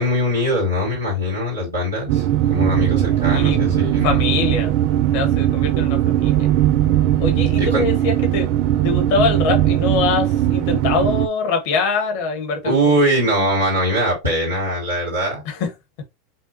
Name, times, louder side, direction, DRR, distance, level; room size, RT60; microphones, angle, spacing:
voice 1, 0.0-4.2 7.6-7.9 12.6-15.4, equal, 90° right, 1.9 m, -21 dB
sound 1, 2.1-11.3, right 12 dB, 55° right, 0.3 m, -19 dB
voice 2, 4.0-4.7 5.1-6.5 7.2-8.5 8.8-12.7 13.4-13.5 15.5-15.7, left 4 dB, 60° left, 1.3 m, -23 dB
5.5 x 2.3 x 2.7 m
hypercardioid pair, 85°, 0 cm